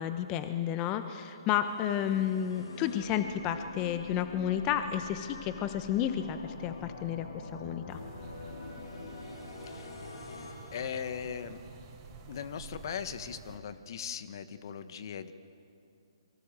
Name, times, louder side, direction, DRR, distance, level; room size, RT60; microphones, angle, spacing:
voice 1, 0.0-7.3 7.5-8.0, left 10 dB, 25° left, 9 dB, 1.0 m, -31 dB
sound 1, 1.5-11.8, left 2 dB, 70° left, 5.0 m, -45 dB
sound 2, 7.9-13.6, right 5 dB, 25° right, 4.4 m, -51 dB
voice 2, 10.7-11.6 12.3-15.3, left 7 dB, 50° left, 12 dB, 1.3 m, -39 dB
27.5 x 23.5 x 7.6 m, 2.6 s
hypercardioid pair, 145°, 3 cm